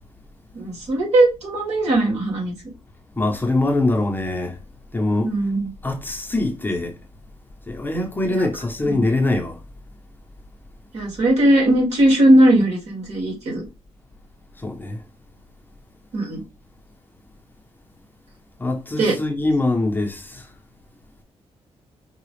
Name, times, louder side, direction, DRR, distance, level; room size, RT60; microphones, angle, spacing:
voice 1, 0.5-2.5 5.2-5.7 8.3-8.4 9.0-9.1 10.9-13.6 16.1-16.4 19.0-19.1, right 1 dB, 80° right, 2.2 m, -18 dB
voice 2, 3.1-4.6 4.9-5.4 5.8-7.0 7.7-9.6 14.6-15.0 18.6-20.5, left 2 dB, 20° left, 0.8 m, -23 dB
4.8 x 2.4 x 3.1 m
cardioid pair, 110°, 11 cm